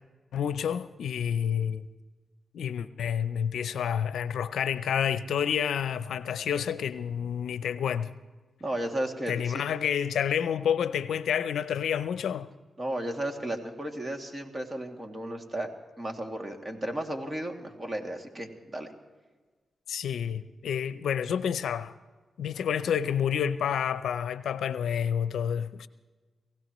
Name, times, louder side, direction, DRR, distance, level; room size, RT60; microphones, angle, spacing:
voice 1, 0.3-1.8 2.5-8.1 9.3-12.5 19.9-21.9 22.4-25.9, left 8 dB, 85° left, 0.5 m, -29 dB
voice 2, 8.6-9.6 12.8-15.7 16.0-18.9, right 1 dB, 30° right, 2.4 m, -34 dB
28.5 x 16.0 x 3.1 m
cardioid pair, 55°, 0 cm